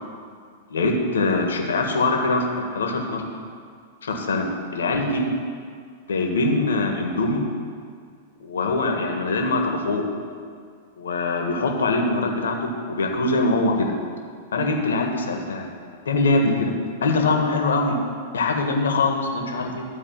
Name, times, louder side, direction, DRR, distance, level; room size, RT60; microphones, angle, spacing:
voice 1, 0.7-3.2 4.0-5.3 6.1-7.5 8.4-10.0 11.0-13.9 14.5-15.7 16.0-16.7 17.0-17.9 18.3-19.8, left 2 dB, 70° left, 2 dB, 1.6 m, -23 dB
13.0 x 4.8 x 7.5 m, 2.1 s
figure-of-eight pair, 100°, 0 cm